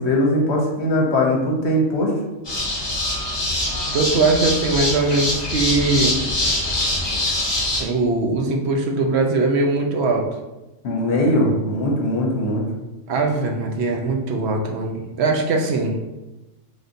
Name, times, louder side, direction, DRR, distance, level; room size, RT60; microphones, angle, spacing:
voice 1, 0.0-2.1 10.8-12.6, left 1 dB, 60° left, -1 dB, 1.0 m, -20 dB
sound 1, 2.4-7.8, left 1 dB, 25° left, 0.8 m, -23 dB
voice 2, 3.9-6.2 7.8-10.3 13.1-16.0, right 3 dB, 65° right, 2 dB, 0.8 m, -21 dB
3.4 x 2.6 x 3.8 m, 1.0 s
omnidirectional pair, 1.4 m